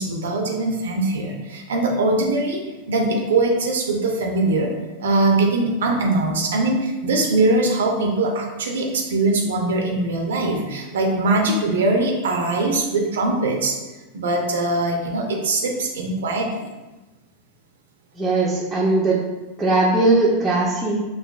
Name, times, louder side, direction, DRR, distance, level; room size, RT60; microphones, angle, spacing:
voice 1, 0.0-2.6 2.9-4.7 5.0-13.7 14.1-16.6, right 2 dB, 65° right, 1 dB, 0.6 m, -21 dB
voice 2, 18.2-19.2 19.6-21.0, right 2 dB, 10° right, -8 dB, 0.6 m, -19 dB
6.5 x 2.5 x 2.4 m, 1.1 s
figure-of-eight pair, 90°, 0 cm